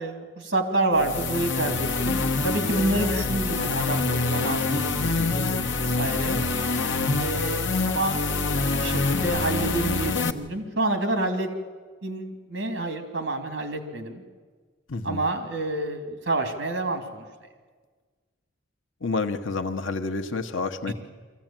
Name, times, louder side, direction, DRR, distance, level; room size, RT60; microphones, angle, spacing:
voice 1, 0.0-6.4 7.1-8.5 8.8-11.5 12.0-14.2 15.0-17.2 20.9-21.0, right 2 dB, 60° right, 7 dB, 2.9 m, -28 dB
sound 1, 0.9-10.3, left 3 dB, 70° left, 1.2 m, -26 dB
voice 2, 5.0-5.4 14.9-15.2 19.0-20.9, left 3 dB, 85° left, 7 dB, 1.0 m, -29 dB
23.5 x 15.5 x 9.0 m, 1.5 s
head